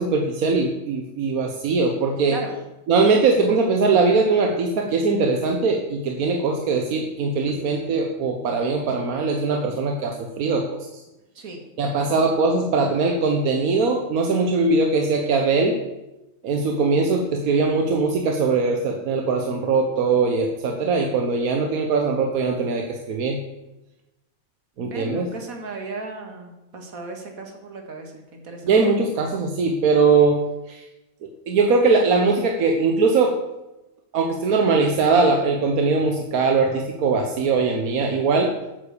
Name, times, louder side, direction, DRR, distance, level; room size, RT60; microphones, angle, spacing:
voice 1, 0.0-2.3 2.9-10.7 11.8-15.7 16.4-23.4 24.8-25.2 28.6-30.4 30.7-30.8 31.5-33.3 34.1-38.5, right 4 dB, 90° right, 3 dB, 1.4 m, -21 dB
voice 2, 24.8-28.6, right 3 dB, 75° right, 3 dB, 2.2 m, -36 dB
8.6 x 7.9 x 6.9 m, 0.98 s
omnidirectional pair, 1.5 m